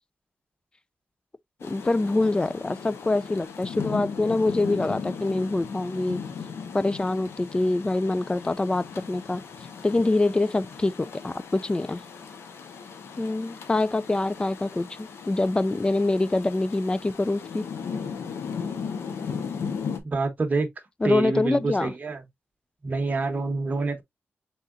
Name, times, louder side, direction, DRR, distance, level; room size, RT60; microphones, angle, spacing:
Rain, 1.6-20.0, left 6 dB, 90° left, 0.7 m, -37 dB
voice 1, 1.6-6.2 6.7-9.4 9.8-12.0 13.2-17.6 21.0-21.9, left 2 dB, 20° left, 0.3 m, -25 dB
voice 2, 20.0-20.7 21.0-22.2 22.8-24.0, right 3 dB, 40° right, 0.9 m, -27 dB
5.4 x 3.8 x 2.3 m
cardioid pair, 85°, 4 cm